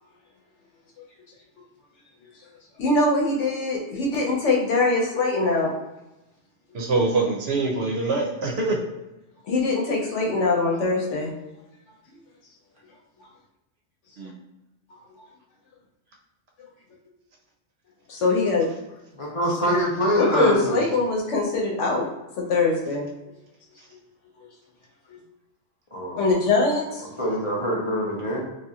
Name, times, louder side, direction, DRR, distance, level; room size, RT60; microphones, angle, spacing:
voice 1, 2.8-5.7 9.5-11.3 18.1-18.7 20.2-22.1 22.4-23.1 24.4-24.5 25.1-25.2 26.2-27.0, left 3 dB, 85° left, -1 dB, 1.0 m, -22 dB
voice 2, 6.7-8.8 14.2-14.3, right 3 dB, 70° right, -1 dB, 0.8 m, -24 dB
voice 3, 19.2-20.8 25.9-26.3 27.2-28.4, equal, 45° left, -5 dB, 0.4 m, -24 dB
2.8 x 2.3 x 2.3 m, 0.98 s
omnidirectional pair, 1.2 m